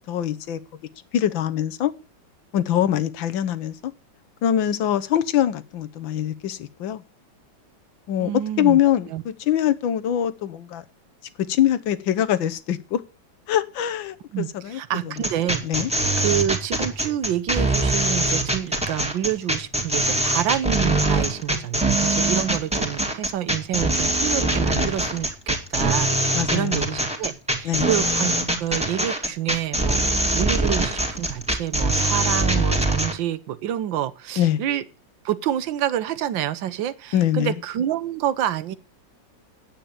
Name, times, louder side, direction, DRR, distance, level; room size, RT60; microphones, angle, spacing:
voice 1, 0.1-0.6 1.1-1.9 2.5-3.9 4.4-7.0 8.1-8.3 8.6-10.8 11.4-13.0 13.5-14.8 15.6-15.9 26.3-26.9 27.6-27.9 34.4-34.6 37.1-37.6, left 11 dB, 85° left, 1.7 m, -23 dB
voice 2, 8.2-8.8 9.1-9.2 14.3-34.8 35.2-38.8, right 11 dB, 80° right, 1.6 m, -28 dB
sound 1, 15.2-33.1, right 2 dB, 5° right, 2.1 m, -22 dB
9.0 x 8.9 x 8.7 m
omnidirectional pair, 2.0 m